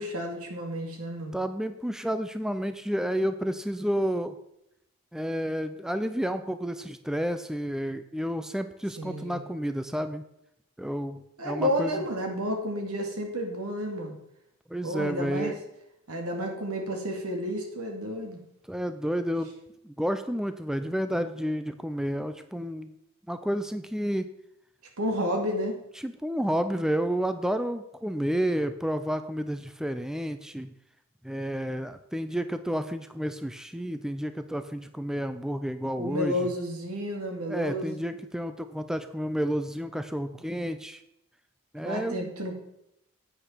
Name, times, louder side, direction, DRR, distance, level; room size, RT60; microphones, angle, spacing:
voice 1, 0.0-1.3 9.0-9.4 11.4-14.2 14.8-15.5 16.1-18.4 25.0-25.8 36.0-38.0 41.8-42.5, equal, 85° right, 2 dB, 2.6 m, -31 dB
voice 2, 1.3-4.4 5.1-10.2 10.8-12.0 14.7-15.6 18.7-19.5 19.8-22.9 23.3-24.3 26.0-30.7 31.2-36.5 37.5-41.0 41.7-42.3, equal, ahead, 9 dB, 0.5 m, -30 dB
10.0 x 8.8 x 4.5 m, 0.82 s
head